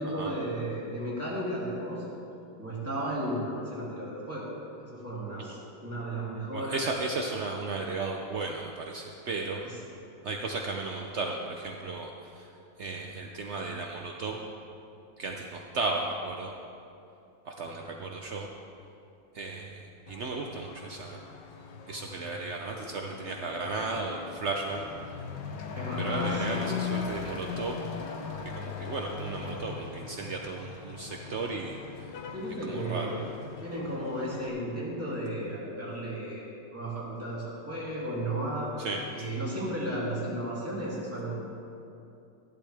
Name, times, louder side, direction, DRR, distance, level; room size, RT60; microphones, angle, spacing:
voice 1, 0.0-2.1 2.6-4.5 4.8-6.8 25.7-26.7 32.3-33.2 33.6-36.5 36.7-38.7 39.1-41.4, right 1 dB, 5° right, -8 dB, 2.7 m, -34 dB
voice 2, 6.5-9.6 10.2-12.5 12.8-14.4 15.2-16.5 17.5-18.5 19.3-21.2 21.9-24.9 26.0-27.8 28.5-32.1 32.7-33.1 38.8-39.3, right 3 dB, 75° right, 1 dB, 0.6 m, -35 dB
Truck / Accelerating revving vroom, 20.1-34.5, left 6 dB, 70° left, 1.4 m, -39 dB
14.0 x 11.5 x 3.4 m, 2.7 s
omnidirectional pair, 2.1 m